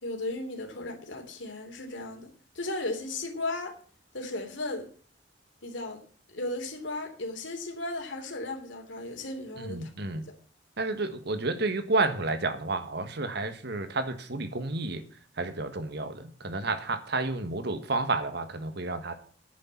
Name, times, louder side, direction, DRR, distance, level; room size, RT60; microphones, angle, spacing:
voice 1, 0.0-2.3 2.5-3.8 4.1-4.9 5.6-6.0 6.3-9.9 10.2-10.3, left 2 dB, 85° left, 3.1 m, -35 dB
voice 2, 9.6-10.2 10.8-15.0 15.4-19.1, right 3 dB, 65° right, 1.5 m, -30 dB
10.0 x 6.6 x 8.8 m
head